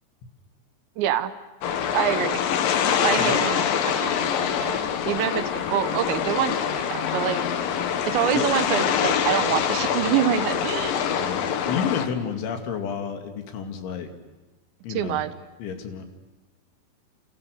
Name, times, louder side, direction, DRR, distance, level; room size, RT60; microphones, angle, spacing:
voice 1, 1.0-1.3 1.9-2.5 3.0-3.6 3.9-7.4 8.1-11.1 14.9-15.3, right 11 dB, 75° right, 11 dB, 3.1 m, -26 dB
sound 1, 1.6-12.1, left 8 dB, 60° left, 2.7 m, -25 dB
voice 2, 3.1-3.5 8.3-8.4 11.2-14.1 14.8-15.2 15.6-16.0, left 7 dB, 80° left, 5 dB, 4.6 m, -30 dB
29.5 x 29.0 x 6.5 m, 1.1 s
omnidirectional pair, 5.4 m